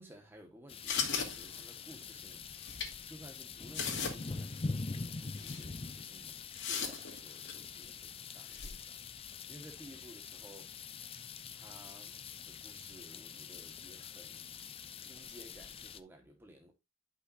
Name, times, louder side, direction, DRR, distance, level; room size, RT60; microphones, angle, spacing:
voice 1, 0.0-2.5 3.1-6.4 6.7-10.7 11.5-12.1 12.5-14.4 15.0-16.7, right 1 dB, 10° right, 1.2 m, -56 dB
sound 1, 0.7-16.0, left 4 dB, 25° left, 0.5 m, -44 dB
sound 2, 0.9-1.9 2.6-2.9 3.4-3.5 3.7-4.3 4.7-4.8 5.4-5.6 6.5-7.6 8.5-8.7, left 6 dB, 55° left, 2.5 m, -37 dB
11.5 x 5.8 x 2.5 m
head